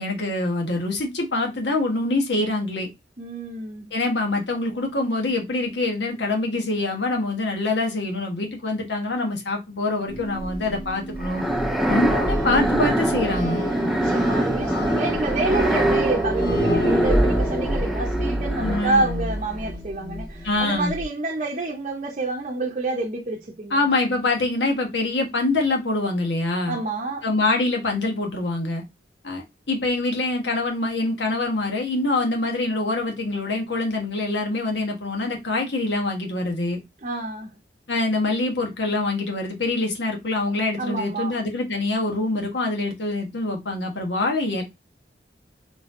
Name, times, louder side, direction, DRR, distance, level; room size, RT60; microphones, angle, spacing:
voice 1, 0.0-2.9 3.9-11.4 11.9-13.6 18.6-19.0 20.4-20.9 23.7-26.8 27.2-28.8 29.2-36.8 37.9-44.6, left 2 dB, 90° left, 1.3 m, -25 dB
voice 2, 3.2-3.9 13.9-23.9 26.7-27.2 37.0-37.5 40.8-41.4, right 3 dB, 40° right, 0.6 m, -28 dB
sound 1, 10.1-21.0, right 1 dB, 25° left, 1.5 m, -27 dB
sound 2, 11.2-19.2, right 1 dB, ahead, 0.5 m, -25 dB
4.1 x 3.3 x 2.5 m
head